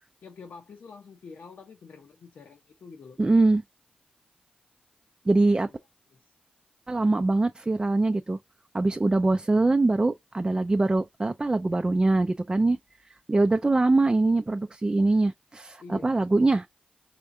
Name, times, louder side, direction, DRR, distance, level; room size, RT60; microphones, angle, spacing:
voice 1, 0.2-3.2 5.5-5.6 6.1-6.2 6.9-7.1 15.8-16.2, left 4 dB, 85° left, 0.8 m, -47 dB
voice 2, 3.2-3.6 5.3-5.7 6.9-8.4 8.7-12.8 13.3-16.7, right 2 dB, 25° right, 0.4 m, -23 dB
4.4 x 3.5 x 2.6 m
cardioid pair, 65°, 3 cm